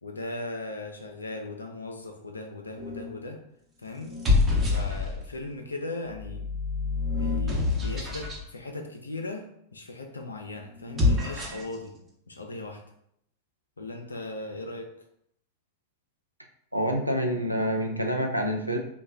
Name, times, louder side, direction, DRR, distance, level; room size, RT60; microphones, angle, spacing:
voice 1, 0.0-3.4 3.8-4.2 4.7-6.5 7.1-11.9 12.3-12.8 13.8-14.9, left 2 dB, 75° left, 3 dB, 0.4 m, -38 dB
sound 1, 2.8-3.2 4.0-5.4 6.1-8.4 10.8-11.7, left 3 dB, 20° right, 0.9 m, -26 dB
voice 2, 16.7-18.8, equal, 90° right, 2 dB, 0.5 m, -27 dB
3.0 x 2.2 x 3.4 m, 0.73 s
figure-of-eight pair, 90°, 0 cm